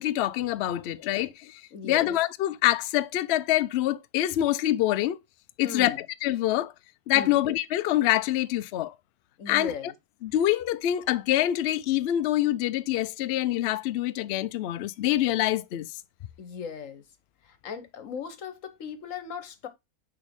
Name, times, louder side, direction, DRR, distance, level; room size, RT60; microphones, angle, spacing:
voice 1, 0.0-5.2 5.6-6.7 7.1-8.9 9.5-9.7 10.2-15.9, left 13 dB, 80° left, 0.5 m, -25 dB
voice 2, 1.7-2.1 5.6-6.0 7.1-7.4 9.4-9.9 16.4-17.0 17.4-19.7, left 6 dB, 60° left, 1.2 m, -38 dB
6.1 x 4.4 x 3.5 m
omnidirectional pair, 1.6 m